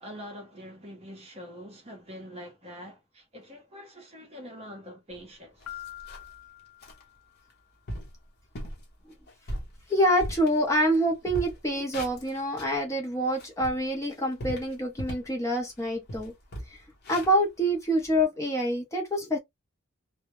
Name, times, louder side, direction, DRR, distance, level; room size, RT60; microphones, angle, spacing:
voice 1, 0.0-5.8, equal, 30° right, 0.7 m, -44 dB
sound 1, 5.1-5.2 5.6-6.4 6.8-7.0 7.5-7.6 7.9-8.2 8.5-8.8 9.3-11.0 11.2-12.8 13.2-15.4 15.7-15.8 16.1-18.2, equal, 50° left, 0.9 m, -39 dB
Piano, 5.7-7.6, left 13 dB, 85° left, 0.7 m, -45 dB
voice 2, 9.9-16.3 17.1-19.4, equal, 15° left, 0.6 m, -26 dB
2.1 x 2.0 x 2.9 m
head